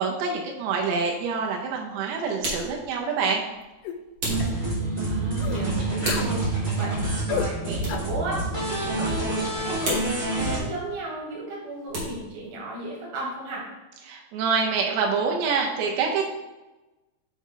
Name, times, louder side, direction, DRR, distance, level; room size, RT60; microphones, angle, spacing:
voice 1, 0.0-3.4 14.0-16.3, right 5 dB, 85° right, 0 dB, 3.0 m, -26 dB
sound 1, 1.4-1.8 2.4-3.6 4.1-4.8 6.0-6.7 7.8-8.3 8.6-9.2 9.8-11.0 11.6-12.3, right 1 dB, 55° right, 1.0 m, -33 dB
sound 2, 3.8-4.0 4.4-4.6 5.4-5.7 6.0-6.3 7.3-7.5 7.9-8.1 9.8-10.0, left 7 dB, 85° left, 2.6 m, -32 dB
sound 3, 4.2-10.6, right 2 dB, 20° right, 1.2 m, -27 dB
voice 2, 5.0-8.4 8.8-13.6, right 2 dB, 40° right, -4 dB, 2.4 m, -35 dB
7.2 x 5.3 x 3.8 m, 1.1 s
omnidirectional pair, 5.0 m